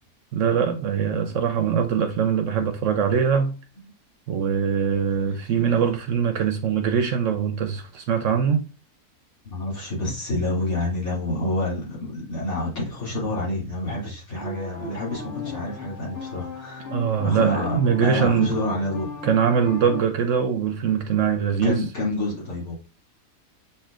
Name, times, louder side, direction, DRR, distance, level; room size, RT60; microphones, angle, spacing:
voice 1, 0.3-3.5 4.3-8.6 16.9-18.5 19.2-21.8, right 7 dB, 65° right, 0.8 m, -22 dB
voice 2, 9.4-16.9 17.2-19.1 21.6-22.7, left 1 dB, 70° left, 2.8 m, -28 dB
sound 1, 14.4-20.0, left 5 dB, 50° left, 1.6 m, -36 dB
7.7 x 2.8 x 2.4 m
omnidirectional pair, 1.6 m